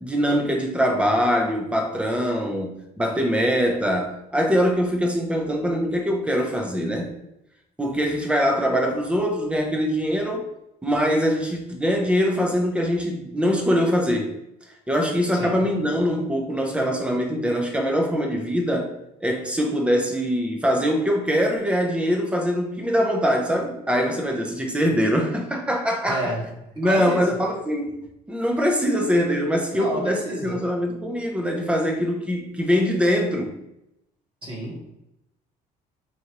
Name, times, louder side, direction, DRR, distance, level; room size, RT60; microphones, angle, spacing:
voice 1, 0.0-7.1 7.8-10.5 10.8-14.3 14.9-18.9 19.2-26.3 26.8-28.0 28.3-33.5, equal, 5° right, 1 dB, 0.7 m, -23 dB
voice 2, 15.3-15.7 26.1-27.3 29.7-30.7 34.4-34.8, right 1 dB, 30° right, -5 dB, 1.3 m, -30 dB
4.6 x 2.6 x 2.9 m, 0.85 s
cardioid pair, 110°, 17 cm